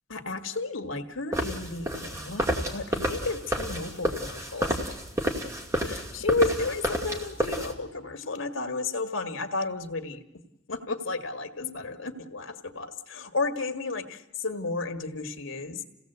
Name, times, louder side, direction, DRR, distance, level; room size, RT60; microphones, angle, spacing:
voice 1, 0.1-4.7 5.8-10.2 10.7-15.8, left 3 dB, 80° left, 7 dB, 1.8 m, -32 dB
sound 1, 1.3-7.7, equal, 15° right, 2.4 m, -30 dB
28.5 x 17.0 x 8.0 m, 0.91 s
head